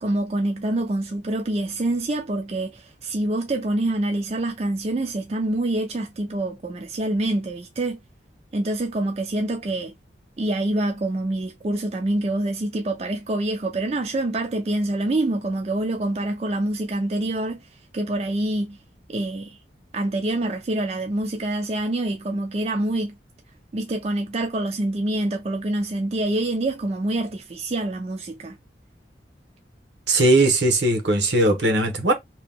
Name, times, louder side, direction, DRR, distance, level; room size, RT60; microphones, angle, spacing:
voice 1, 0.0-8.0 8.5-9.9 10.4-17.6 17.9-18.8 19.1-19.6 19.9-23.1 23.7-28.6, right 1 dB, 35° right, 0.4 m, -26 dB
voice 2, 30.1-32.1, right 2 dB, 75° right, 0.9 m, -19 dB
2.9 x 2.2 x 3.4 m
head